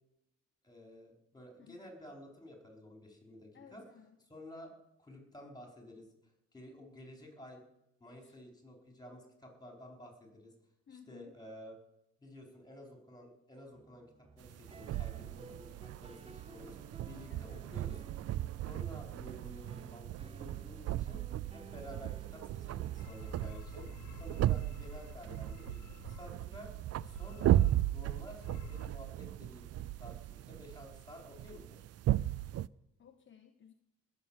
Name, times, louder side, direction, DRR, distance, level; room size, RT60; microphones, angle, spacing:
voice 1, 0.6-3.8 4.3-4.7 5.0-6.1 6.5-7.6 8.0-10.5 10.9-11.7 12.2-14.1 14.4-18.0 18.6-21.2 21.5-23.9 24.2-25.8 26.0-26.7 27.0-27.6 27.9-31.8, left 1 dB, 15° left, 1 dB, 4.9 m, -52 dB
voice 2, 3.5-4.2 8.2-8.4 10.9-11.3 17.3-17.6 33.0-33.7, left 8 dB, 40° left, 6 dB, 1.0 m, -57 dB
sound 1, 13.7-23.5, right 3 dB, 20° right, 0.8 m, -55 dB
sound 2, 14.4-32.7, right 13 dB, 55° right, 0.4 m, -36 dB
sound 3, 23.0-26.5 27.0-28.0 28.3-28.9, left 12 dB, 75° left, 0.8 m, -52 dB
19.5 x 7.4 x 7.4 m, 0.87 s
cardioid pair, 90°, 30 cm